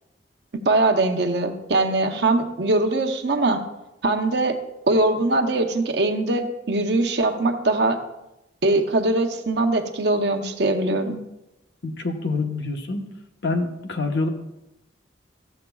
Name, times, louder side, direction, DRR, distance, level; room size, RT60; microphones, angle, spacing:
voice 1, 0.6-3.6 4.0-4.6 4.9-8.0 8.6-11.2, right 2 dB, 65° right, 5 dB, 0.8 m, -21 dB
voice 2, 11.8-13.1 13.4-14.3, left 3 dB, 65° left, 4 dB, 1.0 m, -26 dB
14.0 x 7.8 x 2.3 m, 0.92 s
head